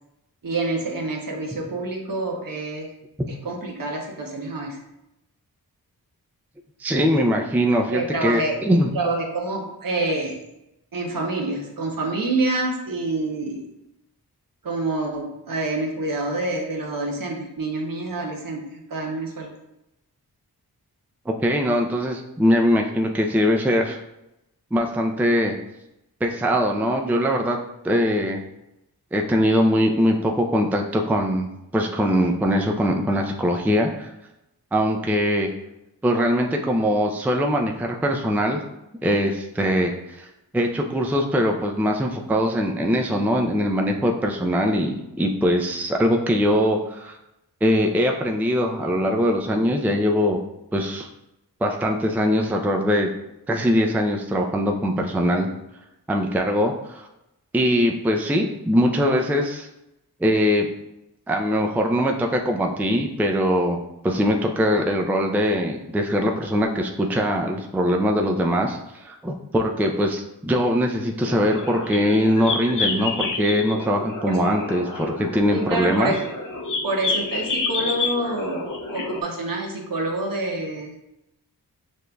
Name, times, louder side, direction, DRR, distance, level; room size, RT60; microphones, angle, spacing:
voice 1, 0.4-2.9 3.3-4.8 7.9-8.5 8.9-10.4 10.9-13.6 14.6-19.5 74.2-74.4 75.5-76.2 76.8-80.9, right 2 dB, 60° right, 0 dB, 1.0 m, -27 dB
voice 2, 6.8-8.9 21.3-24.0 24.7-25.5 26.2-27.6 27.8-28.4 29.1-34.1 34.7-35.5 36.0-38.6 39.0-40.3 40.5-47.2 47.6-50.4 50.7-51.1 51.6-53.1 53.5-55.5 56.1-57.1 57.5-59.7 60.2-60.7 61.3-76.1, equal, 5° right, 2 dB, 0.4 m, -22 dB
sound 1, 71.2-79.2, left 3 dB, 55° left, 0.7 m, -29 dB
6.3 x 2.5 x 2.3 m, 0.89 s
cardioid pair, 50°, 38 cm